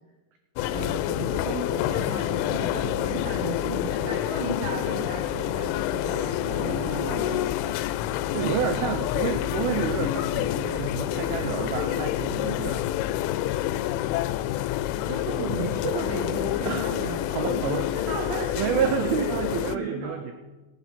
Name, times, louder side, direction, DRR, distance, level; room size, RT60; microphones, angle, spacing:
sound 1, 0.6-19.8, left 13 dB, 90° left, 3.0 m, -28 dB
voice 1, 0.7-7.4 15.1-20.2, right 5 dB, 70° right, 1 dB, 2.3 m, -35 dB
voice 2, 6.4-7.5 8.3-12.8 16.6-16.9 17.3-17.9 18.6-20.3, right 9 dB, 90° right, 6 dB, 2.1 m, -30 dB
18.0 x 7.7 x 5.9 m, 1.2 s
omnidirectional pair, 5.5 m